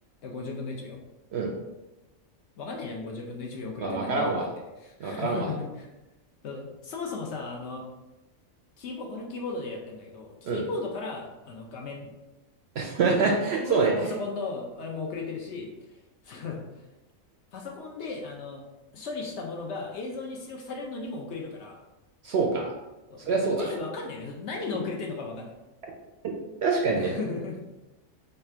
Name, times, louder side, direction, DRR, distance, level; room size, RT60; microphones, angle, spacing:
voice 1, 0.2-1.0 2.6-4.5 4.8-5.9 6.4-7.9 8.8-12.1 13.1-16.7 17.5-18.6 18.9-21.8 23.1-25.5 26.9-27.6, left 3 dB, 65° left, 0 dB, 0.8 m, -36 dB
voice 2, 3.8-4.4 5.0-5.5 10.4-10.6 12.8-13.9 22.2-22.7 23.2-23.7 26.6-27.1, right 4 dB, 65° right, 1 dB, 0.7 m, -25 dB
3.3 x 2.4 x 4.3 m, 1.0 s
omnidirectional pair, 1.4 m